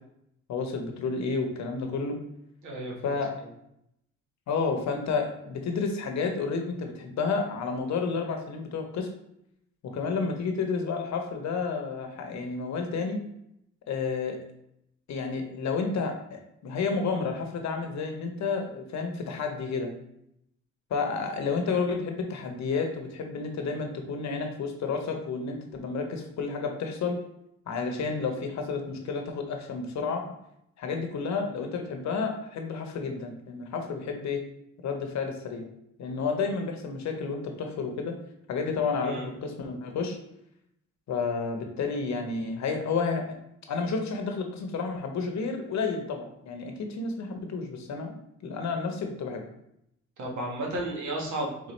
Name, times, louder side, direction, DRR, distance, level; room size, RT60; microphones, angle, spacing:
voice 1, 0.5-2.2 3.0-3.3 4.5-9.1 9.8-13.2 13.9-14.4 15.1-19.9 20.9-27.2 27.7-30.4 30.8-34.4 34.8-35.7 36.0-38.1 38.5-40.2 41.1-43.3 43.7-48.2 48.4-49.4, left 4 dB, 65° left, 4 dB, 0.9 m, -31 dB
voice 2, 2.6-3.1 39.0-39.3 50.2-51.7, right 1 dB, 75° right, -2 dB, 1.4 m, -33 dB
3.9 x 3.9 x 3.2 m, 0.77 s
cardioid pair, 90°, 30 cm